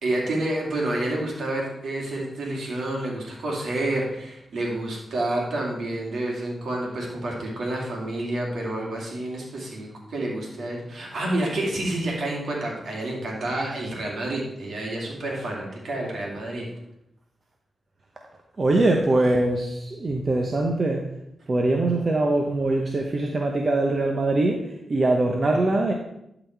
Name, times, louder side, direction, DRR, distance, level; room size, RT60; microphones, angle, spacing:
voice 1, 0.0-16.7, right 1 dB, 75° right, -2 dB, 2.4 m, -29 dB
voice 2, 18.6-21.1 21.5-25.9, right 2 dB, 50° right, 2 dB, 0.9 m, -22 dB
11.5 x 4.1 x 4.5 m, 0.82 s
cardioid pair, 50°, 0 cm